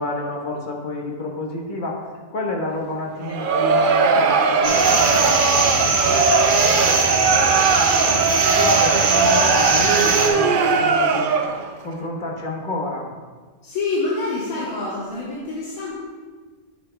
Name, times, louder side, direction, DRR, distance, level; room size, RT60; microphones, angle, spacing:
voice 1, 0.0-5.3 5.8-7.7 8.0-11.3 11.8-13.1, left 2 dB, 35° left, -1 dB, 1.2 m, -30 dB
Crowd, 3.2-11.7, right 4 dB, 90° right, 0.4 m, -19 dB
sound 1, 4.6-10.3, right 3 dB, 70° right, 1.5 m, -21 dB
voice 2, 13.6-16.0, left 3 dB, 80° left, -7 dB, 1.7 m, -26 dB
10.0 x 7.6 x 2.2 m, 1.4 s
omnidirectional pair, 1.5 m